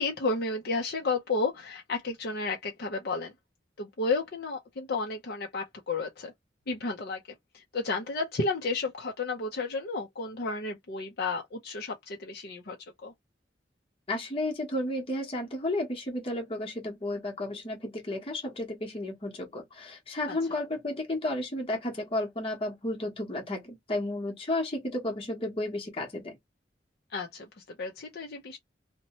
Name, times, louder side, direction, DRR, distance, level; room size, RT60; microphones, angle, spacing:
voice 1, 0.0-3.3 3.8-6.3 6.7-7.2 7.5-12.8 13.0-13.1 20.3-20.4 27.1-28.6, left 3 dB, 60° left, 0.6 m, -32 dB
voice 2, 14.1-26.3, left 1 dB, 30° left, 1.0 m, -32 dB
2.7 x 2.2 x 2.9 m
head